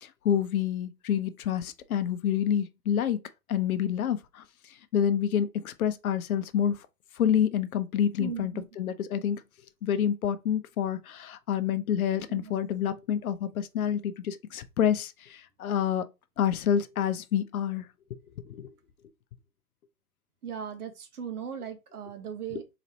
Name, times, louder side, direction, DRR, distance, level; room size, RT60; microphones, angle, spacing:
voice 1, 0.0-3.2 3.5-4.4 4.9-6.8 7.2-9.4 9.8-16.1 16.4-17.9 18.4-18.7, left 9 dB, 65° left, 0.7 m, -28 dB
voice 2, 8.2-8.7 12.3-12.5 20.4-22.8, right 7 dB, 75° right, 1.2 m, -38 dB
4.0 x 3.0 x 2.8 m
hypercardioid pair, 145°, 45 cm